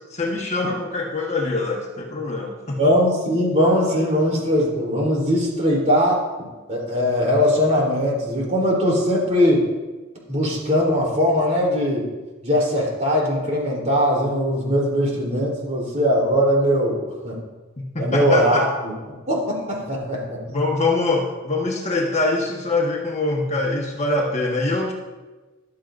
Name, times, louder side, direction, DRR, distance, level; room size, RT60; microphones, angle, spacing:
voice 1, 0.0-2.8 17.9-18.7 20.4-24.9, left 2 dB, 35° left, -1 dB, 1.4 m, -24 dB
voice 2, 2.8-9.7 10.3-12.1 12.4-17.4 18.0-18.9 19.3-20.4, equal, 35° right, -4 dB, 3.6 m, -20 dB
14.5 x 11.5 x 2.6 m, 1.2 s
head